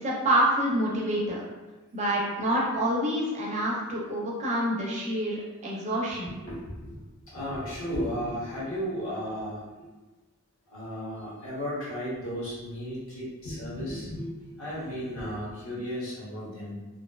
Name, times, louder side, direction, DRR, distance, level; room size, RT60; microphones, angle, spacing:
voice 1, 0.0-1.4 1.9-6.3, right 1 dB, 30° right, -4 dB, 0.5 m, -27 dB
voice 2, 6.2-7.0 7.3-9.6 10.7-16.8, equal, 65° left, -8 dB, 1.0 m, -34 dB
2.5 x 2.1 x 2.2 m, 1.2 s
head